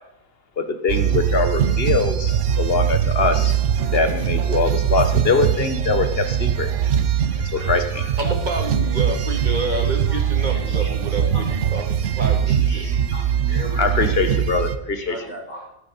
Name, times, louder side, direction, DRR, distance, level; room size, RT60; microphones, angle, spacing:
voice 1, 0.6-3.5 3.9-6.7 7.5-8.1 13.8-15.2, left 4 dB, 45° left, 8 dB, 1.5 m, -22 dB
sound 1, 0.9-14.8, right 9 dB, 65° right, 1.1 m, -21 dB
voice 2, 7.3-8.1 10.1-10.2 10.7-11.0 12.5-13.9 15.5-15.7, left 1 dB, 90° left, -6 dB, 5.4 m, -39 dB
voice 3, 8.2-12.9 15.1-15.4, right 2 dB, 35° right, 3 dB, 2.1 m, -29 dB
17.5 x 8.6 x 4.3 m, 0.81 s
omnidirectional pair, 1.4 m